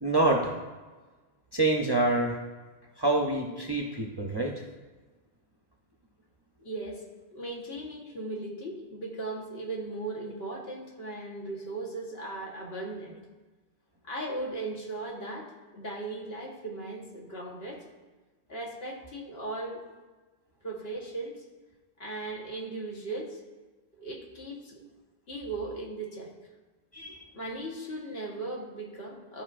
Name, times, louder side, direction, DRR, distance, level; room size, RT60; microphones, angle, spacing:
voice 1, 0.0-0.6 1.5-2.4 3.0-4.5 26.9-27.2, right 2 dB, 30° right, 0 dB, 0.6 m, -26 dB
voice 2, 6.6-7.0 7.3-13.2 14.0-15.5 15.7-17.8 18.5-19.8 20.6-21.4 22.0-23.4 24.0-24.8 25.3-26.3 27.3-29.4, right 2 dB, 70° left, -2 dB, 1.6 m, -37 dB
13.5 x 5.2 x 2.5 m, 1.3 s
omnidirectional pair, 1.1 m